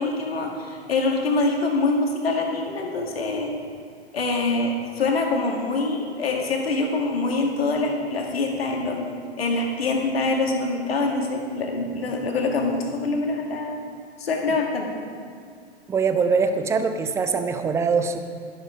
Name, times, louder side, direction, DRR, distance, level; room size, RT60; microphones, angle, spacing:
voice 1, 0.0-3.5 4.1-9.0 9.4-13.8 14.2-14.9, left 3 dB, 65° left, 1 dB, 2.0 m, -25 dB
voice 2, 15.9-18.2, right 5 dB, 10° right, 8 dB, 0.4 m, -22 dB
12.0 x 11.0 x 5.0 m, 2.2 s
figure-of-eight pair, 100°, 32 cm